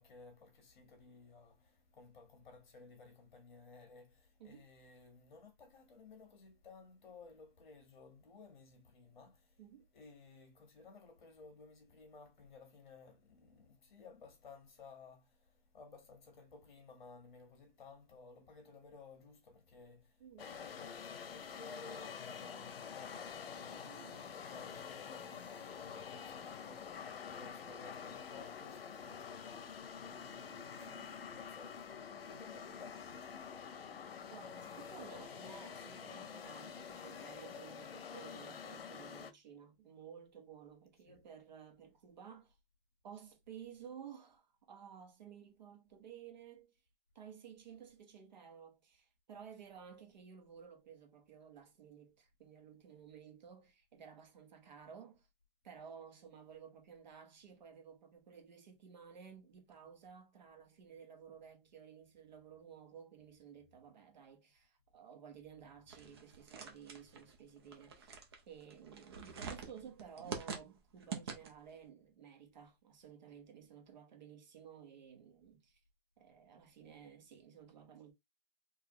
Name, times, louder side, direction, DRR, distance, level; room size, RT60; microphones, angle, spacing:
voice 1, 0.0-9.6 9.9-24.0 24.4-32.0 32.2-33.4 41.0-41.2, left 4 dB, 55° left, 1.6 m, -57 dB
voice 2, 20.2-20.5 23.8-24.3 30.7-31.1 34.3-42.6 43.0-46.7 47.1-55.3 55.6-68.2 68.5-75.8 76.2-78.1, right 7 dB, 50° right, 1.2 m, -55 dB
sound 1, 20.4-39.3, left 7 dB, 90° left, 0.8 m, -47 dB
sound 2, 65.9-71.7, right 5 dB, 25° right, 0.6 m, -47 dB
4.0 x 2.7 x 2.9 m
hypercardioid pair, 165°, 29 cm